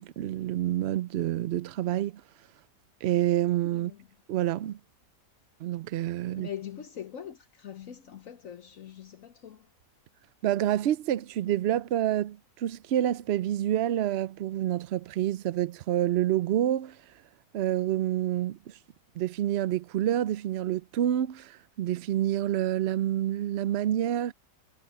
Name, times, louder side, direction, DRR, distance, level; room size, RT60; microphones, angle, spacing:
voice 1, 0.0-2.2 3.0-3.9 4.3-4.8 5.6-6.5 10.4-17.0 17.5-18.7 19.2-24.3, right 12 dB, 85° right, 0.5 m, -28 dB
voice 2, 3.7-4.1 6.3-9.7, left 9 dB, 60° left, 1.2 m, -42 dB
omnidirectional pair, 1.7 m